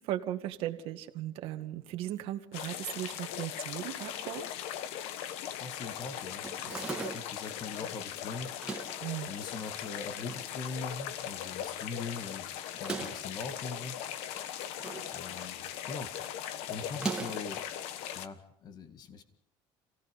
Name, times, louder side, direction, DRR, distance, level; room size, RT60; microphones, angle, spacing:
voice 1, 0.0-4.5 9.0-9.3, right 13 dB, 65° right, 6 dB, 2.0 m, -37 dB
sound 1, 2.5-18.3, left 10 dB, 75° left, 1.3 m, -39 dB
voice 2, 5.6-14.0 15.1-15.6 15.9-16.1 16.7-17.6 18.1-19.2, left 4 dB, 40° left, 8 dB, 2.0 m, -42 dB
sound 2, 6.4-7.4 8.5-9.1 9.8-10.5 10.8-10.9 11.1-11.2 12.7-13.3 14.4-15.1 15.4-15.8 16.9-17.5, right 3 dB, 10° right, 2.8 m, -38 dB
28.0 x 17.5 x 5.4 m, 0.65 s
cardioid pair, 140°, 10 cm